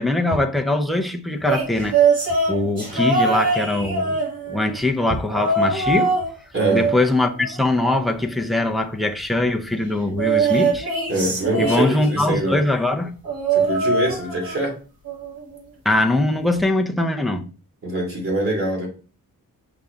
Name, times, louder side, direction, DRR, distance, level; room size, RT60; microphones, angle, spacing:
voice 1, 0.0-2.0 2.5-4.2 4.5-6.1 6.7-10.9 11.6-13.1 15.8-17.5, left 2 dB, ahead, 0.7 m, -22 dB
sound 1, 1.4-4.8 5.3-6.3 6.6-8.1 10.2-12.4 13.2-14.7 15.1-15.4 16.6-16.7, right 4 dB, 75° right, 3.0 m, -22 dB
voice 2, 11.1-12.6 13.5-14.8 17.8-18.9, right 2 dB, 35° right, 3.2 m, -24 dB
5.6 x 5.1 x 3.6 m
wide cardioid pair, 125°, 35 cm